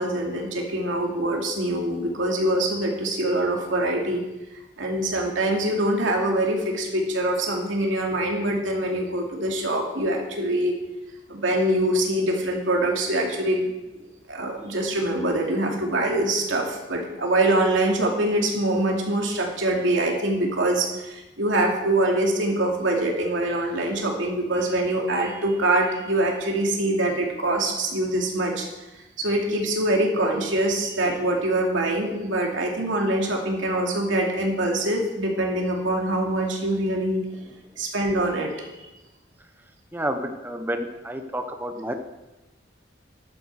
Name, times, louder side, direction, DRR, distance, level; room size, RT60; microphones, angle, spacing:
voice 1, 0.0-4.2 4.8-10.8 11.3-13.7 14.3-28.7 29.2-37.2 37.8-38.8, right 1 dB, 90° right, 0 dB, 2.7 m, -24 dB
voice 2, 39.9-41.9, right 1 dB, 10° right, 6 dB, 0.8 m, -30 dB
13.5 x 11.5 x 4.9 m, 1.1 s
head